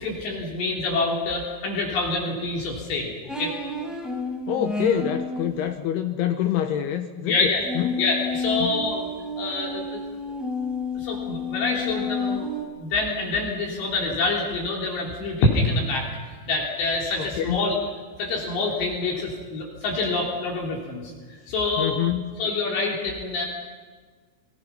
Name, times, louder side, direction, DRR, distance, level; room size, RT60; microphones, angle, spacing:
voice 1, 0.0-3.5 7.3-7.6 8.0-9.1 9.4-10.0 11.0-12.5 12.8-16.1 16.5-17.8 18.2-21.1 21.5-22.0 22.4-23.4, left 3 dB, 60° left, -1 dB, 5.3 m, -26 dB
sound 1, 3.3-5.5 7.6-12.6, left 3 dB, ahead, 4.6 m, -30 dB
voice 2, 4.5-8.0 8.6-8.8 17.2-17.7 21.8-22.3, left 10 dB, 80° left, 6 dB, 2.3 m, -26 dB
30.0 x 23.0 x 5.8 m, 1.5 s
omnidirectional pair, 5.9 m